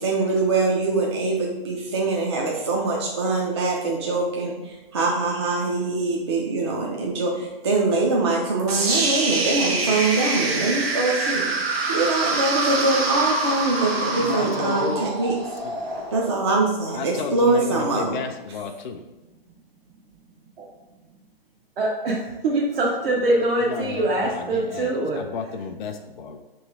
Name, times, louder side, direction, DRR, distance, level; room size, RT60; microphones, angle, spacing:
voice 1, 0.0-11.5 11.9-15.3 16.1-18.2, right 3 dB, 30° right, -2 dB, 0.4 m, -23 dB
sound 1, 8.7-16.7, right 3 dB, 85° right, 1.1 m, -25 dB
voice 2, 14.2-15.1 15.6-15.8 16.9-19.0 23.6-26.4, left 5 dB, 55° left, 4 dB, 0.4 m, -32 dB
voice 3, 21.8-25.2, right 2 dB, 70° right, -3 dB, 0.8 m, -23 dB
3.2 x 3.1 x 4.6 m, 1.1 s
hypercardioid pair, 160°, 30 cm